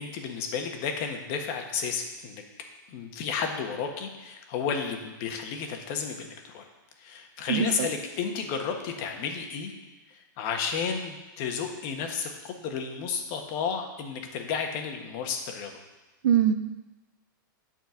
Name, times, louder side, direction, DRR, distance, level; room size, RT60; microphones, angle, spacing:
voice 1, 0.0-2.4 2.9-6.7 7.0-9.7 10.4-15.7, left 6 dB, 40° left, 3 dB, 1.4 m, -32 dB
voice 2, 7.5-7.9 16.2-16.5, right 9 dB, 65° right, 9 dB, 0.8 m, -22 dB
9.3 x 4.5 x 7.1 m, 1.1 s
hypercardioid pair, 140°, 11 cm